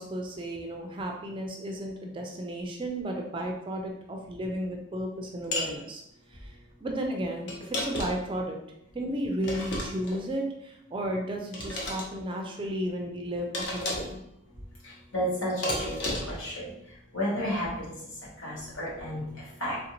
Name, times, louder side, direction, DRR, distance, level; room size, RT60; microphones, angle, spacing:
voice 1, 0.0-6.0 6.3-6.5 6.8-8.6 8.9-14.2, right 1 dB, 25° right, 1 dB, 0.3 m, -33 dB
sound 1, 5.5-5.7 7.5-8.3 9.4-10.2 11.5-12.1 13.5-14.2 15.6-16.4, left 1 dB, 55° left, 0.7 m, -32 dB
voice 2, 14.4-16.0 16.2-19.8, equal, 85° left, -6 dB, 1.3 m, -33 dB
3.3 x 2.5 x 2.9 m, 0.79 s
head